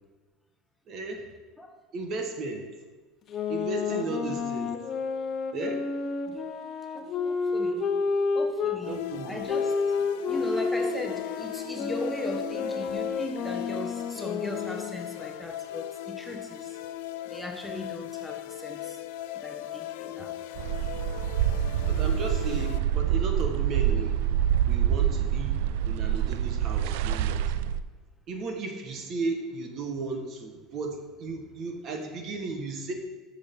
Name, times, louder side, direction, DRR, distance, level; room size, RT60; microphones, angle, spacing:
voice 1, 0.9-1.3 1.9-2.7 3.5-4.8 5.5-5.8 8.9-9.4 20.2-20.3 21.9-24.2 24.7-25.6 25.8-27.7 28.3-32.9, right 3 dB, 50° right, 4 dB, 1.3 m, -35 dB
sound 1, 3.3-8.8 9.5-15.0, left 4 dB, 40° left, 0.9 m, -30 dB
voice 2, 6.9-7.9 8.3-9.0 9.2-9.7 10.2-16.8 17.3-19.0 19.3-20.3, left 1 dB, 5° left, 1 dB, 1.3 m, -38 dB
sound 2, 8.8-22.8, left 13 dB, 80° left, 0.4 m, -38 dB
sound 3, 20.6-27.8, right 10 dB, 85° right, 0.3 m, -26 dB
12.0 x 6.5 x 3.8 m, 1.3 s
supercardioid pair, 115°, 0 cm